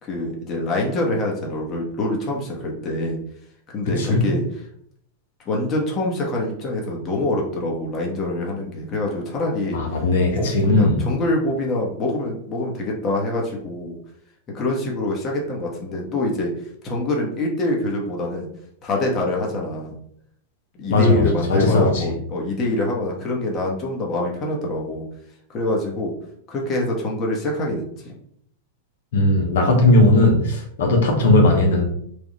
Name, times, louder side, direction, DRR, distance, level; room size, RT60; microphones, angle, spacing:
voice 1, 0.0-3.2 3.7-4.6 5.4-9.8 10.4-14.0 14.5-16.5 16.8-18.5 18.8-19.9 20.8-25.0 25.5-26.1 26.5-28.1, left 1 dB, 30° left, -1 dB, 1.1 m, -25 dB
voice 2, 4.0-4.3 9.7-11.0 20.9-21.2 21.5-22.0 29.1-31.8, left 2 dB, 80° left, 1 dB, 0.9 m, -17 dB
3.4 x 2.4 x 4.1 m, 0.68 s
hypercardioid pair, 120°, 0 cm